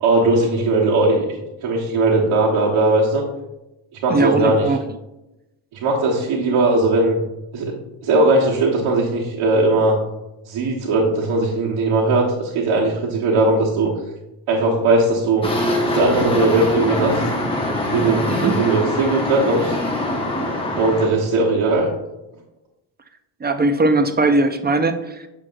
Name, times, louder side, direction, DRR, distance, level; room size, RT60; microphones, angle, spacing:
voice 1, 0.0-1.3 1.6-3.2 4.0-4.7 5.8-7.2 7.5-10.0 10.5-14.0 14.5-15.5 15.8-17.2 17.8-19.8 20.7-21.9, right 2 dB, 80° right, -4 dB, 1.3 m, -18 dB
voice 2, 4.1-4.8 18.3-18.6 23.4-25.3, right 2 dB, 20° right, 9 dB, 0.4 m, -19 dB
sound 1, 15.4-21.1, left 1 dB, 10° left, 1.2 m, -23 dB
7.4 x 6.3 x 2.5 m, 0.94 s
cardioid pair, 105°, 48 cm